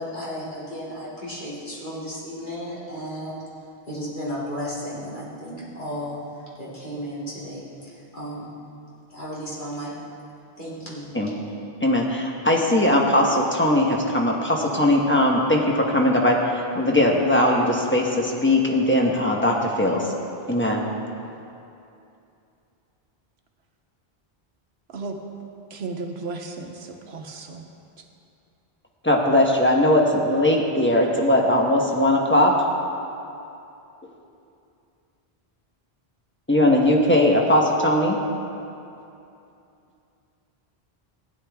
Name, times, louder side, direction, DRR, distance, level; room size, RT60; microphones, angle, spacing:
voice 1, 0.0-3.4 3.9-8.5 9.1-10.0 10.6-11.1, equal, 50° left, -8 dB, 2.9 m, -34 dB
voice 2, 11.8-20.1 20.5-20.8 29.0-32.5 36.5-38.2, left 1 dB, 10° left, -1 dB, 1.1 m, -19 dB
voice 3, 25.7-27.7 28.0-28.1, right 3 dB, 85° right, 3 dB, 1.2 m, -34 dB
15.5 x 10.0 x 3.5 m, 2.7 s
omnidirectional pair, 1.0 m